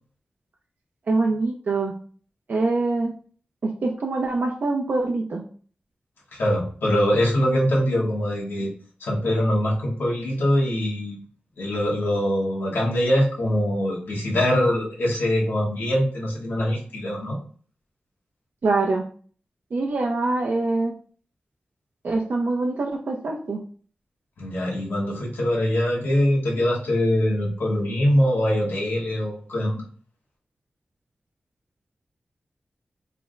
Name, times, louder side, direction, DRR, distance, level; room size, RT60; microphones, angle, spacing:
voice 1, 1.1-1.9 2.5-3.1 3.6-5.4 18.6-19.0 19.7-20.9 22.0-23.6, right 3 dB, 60° right, 0 dB, 0.4 m, -24 dB
voice 2, 6.3-8.7 9.0-11.2 11.6-17.4 24.4-29.8, equal, 90° left, -3 dB, 1.1 m, -23 dB
3.2 x 2.0 x 3.7 m, 0.44 s
wide cardioid pair, 130°, 4 cm